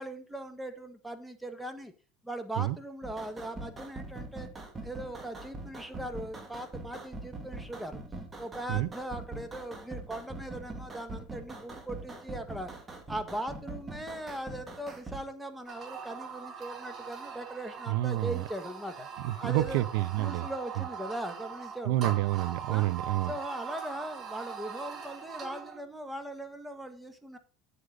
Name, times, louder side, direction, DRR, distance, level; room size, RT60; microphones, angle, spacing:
voice 1, 0.0-1.9 2.2-4.5 4.8-8.0 8.4-12.7 13.1-19.1 19.4-19.9 20.2-22.2 22.7-22.9 23.3-27.4, right 1 dB, 5° right, 1.6 m, -39 dB
sound 1, 3.0-15.2, right 2 dB, 20° right, 2.3 m, -43 dB
sound 2, 15.7-25.8, right 6 dB, 40° right, 2.6 m, -41 dB
voice 2, 17.9-18.4 19.2-20.5 21.9-23.3, right 17 dB, 75° right, 0.5 m, -28 dB
9.6 x 8.0 x 4.0 m
supercardioid pair, 110°, 0 cm